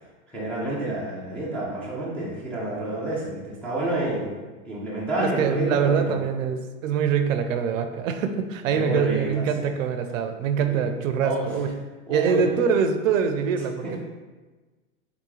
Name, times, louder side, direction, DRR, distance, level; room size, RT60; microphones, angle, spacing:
voice 1, 0.3-4.3 4.6-6.2 8.7-9.7 10.7-10.8 11.2-11.5 12.1-12.4, right 1 dB, 5° left, -9 dB, 0.4 m, -29 dB
voice 2, 5.2-11.8 12.1-14.0, right 7 dB, 65° right, 7 dB, 0.5 m, -24 dB
3.7 x 3.6 x 3.0 m, 1.3 s
hypercardioid pair, 130°, 42 cm